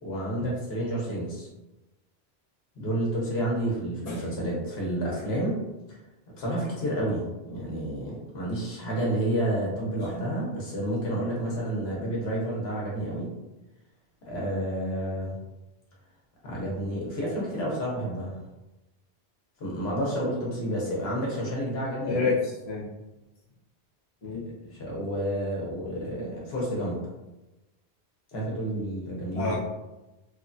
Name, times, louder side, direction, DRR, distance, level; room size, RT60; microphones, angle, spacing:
voice 1, 0.0-1.5 2.8-5.6 6.3-13.3 14.3-15.3 16.4-18.3 19.6-22.3 24.2-24.3 24.7-27.0 28.3-29.6, right 1 dB, 75° left, -4 dB, 1.0 m, -30 dB
voice 2, 22.0-22.9 24.2-24.5 29.3-29.6, left 4 dB, 40° left, -7 dB, 0.8 m, -29 dB
3.1 x 2.1 x 2.5 m, 1.0 s
omnidirectional pair, 1.1 m